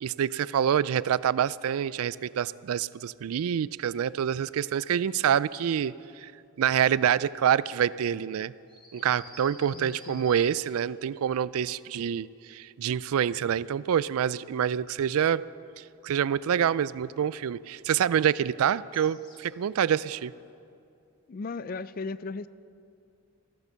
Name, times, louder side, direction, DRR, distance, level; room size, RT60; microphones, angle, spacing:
voice 1, 0.0-6.3 6.6-8.5 8.9-15.4 15.8-20.3, right 9 dB, 75° right, 19 dB, 0.3 m, -27 dB
sound 1, 8.7-11.0 18.9-19.6, left 1 dB, 20° left, 1.8 m, -50 dB
voice 2, 9.7-10.3 21.3-22.5, left 4 dB, 40° left, 16 dB, 0.3 m, -36 dB
14.5 x 13.5 x 6.9 m, 2.5 s
head